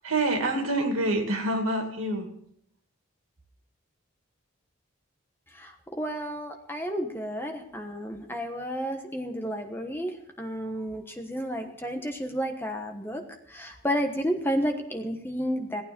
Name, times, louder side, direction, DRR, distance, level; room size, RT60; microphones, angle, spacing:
voice 1, 0.0-2.3, right 2 dB, 85° right, 4 dB, 2.5 m, -26 dB
voice 2, 5.5-13.2 13.5-15.8, equal, 10° left, 4 dB, 1.2 m, -31 dB
17.5 x 9.3 x 5.3 m, 0.72 s
head